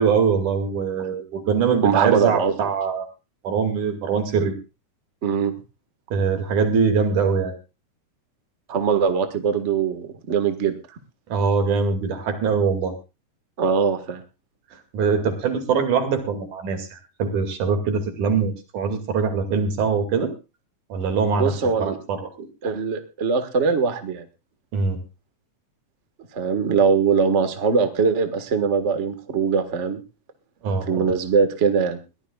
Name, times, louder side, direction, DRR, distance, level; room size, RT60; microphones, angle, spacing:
voice 1, 0.0-3.1 3.4-4.5 6.1-7.5 11.3-12.9 14.9-20.3 20.9-22.5 24.7-25.0 30.6-31.1, right 5 dB, 85° right, 6 dB, 3.9 m, -23 dB
voice 2, 1.8-2.5 5.2-5.5 8.7-10.7 13.6-14.2 21.3-22.0 22.6-24.2 26.3-30.0 30.8-32.0, right 6 dB, 30° right, 7 dB, 1.4 m, -21 dB
22.0 x 15.5 x 2.4 m, 0.30 s
omnidirectional pair, 3.4 m